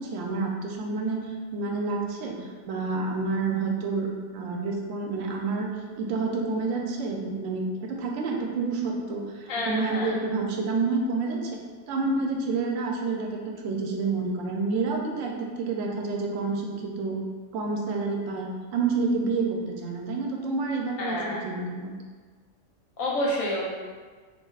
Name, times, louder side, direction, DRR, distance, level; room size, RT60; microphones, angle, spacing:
voice 1, 0.0-4.1 4.3-5.7 6.0-11.6 11.9-17.2 17.5-21.9, right 3 dB, 75° right, 1 dB, 0.9 m, -29 dB
voice 2, 9.5-10.2 21.0-21.4 23.0-23.7, left 1 dB, 80° left, -3 dB, 1.1 m, -28 dB
4.7 x 2.4 x 2.3 m, 1.5 s
omnidirectional pair, 1.4 m